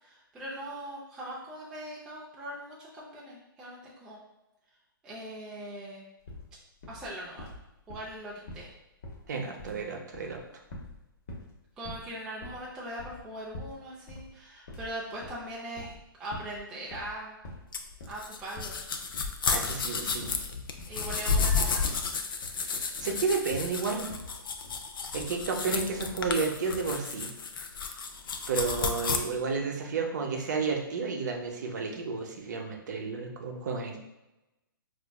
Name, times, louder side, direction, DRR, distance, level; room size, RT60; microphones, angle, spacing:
voice 1, 0.0-4.2 5.0-6.1 6.9-7.5 7.9-8.7 11.8-15.9 16.2-17.4 18.1-18.8 20.9-21.9, right 1 dB, 5° right, -6 dB, 0.3 m, -40 dB
sound 1, 6.3-6.5 6.8-7.1 7.4-8.7 9.0-9.8 10.1-11.0 11.3-11.5 11.8-12.1 12.4-13.8 14.1-14.3 14.7-16.0 16.3-16.6 16.9-17.7 18.0-18.3 18.6-18.9 19.1-19.4 19.7-19.9 20.2-20.5 20.8-21.0 21.3-21.6 21.9-22.6 23.0-23.3 23.5-23.8 24.1-24.4 24.6-24.9 25.2-25.5 25.7-26.0, left 2 dB, 40° left, 0.8 m, -45 dB
voice 2, 9.3-10.4 19.4-20.3 23.0-24.2 25.1-27.3 28.5-34.0, right 4 dB, 50° right, 2 dB, 0.7 m, -31 dB
sound 2, 17.7-29.2, left 5 dB, 65° left, 0.5 m, -32 dB
4.6 x 2.5 x 2.2 m, 0.96 s
hypercardioid pair, 160°, 12 cm